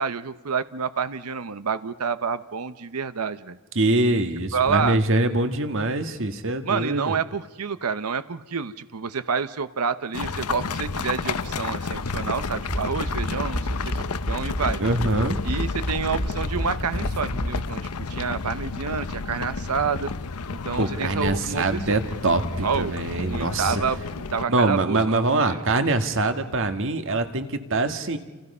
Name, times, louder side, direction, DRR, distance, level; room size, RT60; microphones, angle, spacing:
voice 1, 0.0-3.6 4.5-5.0 6.6-14.0 14.3-14.8 15.4-17.8 18.1-20.1 20.5-21.8 22.6-23.0 23.2-24.0 24.3-25.6, right 6 dB, 90° right, 13 dB, 0.8 m, -28 dB
voice 2, 3.8-7.1 14.8-15.4 20.8-23.8 24.5-28.2, right 2 dB, 60° right, 7 dB, 1.7 m, -24 dB
sound 1, 10.1-24.5, left 4 dB, 85° left, 0.9 m, -31 dB
sound 2, 12.7-17.7, equal, 50° left, 2.0 m, -30 dB
29.5 x 28.0 x 5.5 m, 1.2 s
head